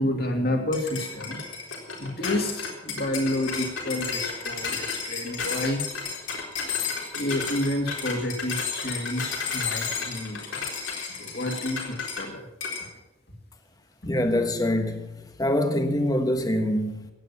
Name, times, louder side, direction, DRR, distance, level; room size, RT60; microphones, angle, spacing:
voice 1, 0.0-1.5 2.0-5.8 7.1-10.6 11.2-12.5 12.8-12.9, left 1 dB, 50° left, 2.6 m, -29 dB
sound 1, 0.7-12.3 12.6-12.9, left 5 dB, 75° left, 3.9 m, -32 dB
voice 2, 14.0-15.1 15.4-17.1, left 1 dB, 20° left, 1.3 m, -24 dB
15.5 x 9.4 x 7.2 m
head